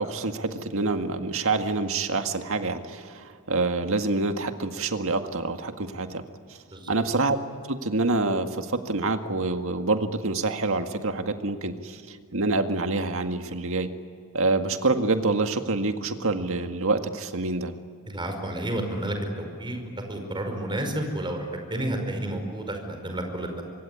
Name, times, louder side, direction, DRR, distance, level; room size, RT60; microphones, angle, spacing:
voice 1, 0.0-6.2 6.9-7.4 7.7-13.9 14.3-17.7, right 3 dB, 65° right, 6 dB, 1.9 m, -26 dB
voice 2, 18.1-21.5 21.7-23.6, right 1 dB, 20° right, 4 dB, 5.2 m, -31 dB
25.5 x 23.5 x 9.9 m, 2.1 s
head